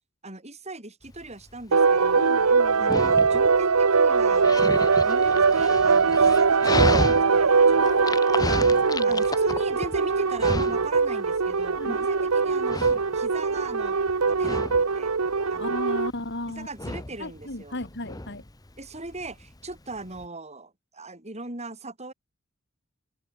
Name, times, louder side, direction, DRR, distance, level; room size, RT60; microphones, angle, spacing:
voice 1, 0.2-2.3 2.8-8.2 9.0-14.0 14.3-15.1 15.5-15.9 16.5-17.8 18.8-22.1, right 2 dB, 30° right, 5.9 m, -39 dB
Dog, 1.1-20.3, left 2 dB, 15° left, 1.1 m, -34 dB
sound 1, 1.7-16.1, right 5 dB, 90° right, 1.0 m, -21 dB
voice 2, 2.2-2.9 7.8-9.2 11.8-12.3 15.5-16.7 17.2-18.4, left 1 dB, 55° left, 4.7 m, -36 dB
head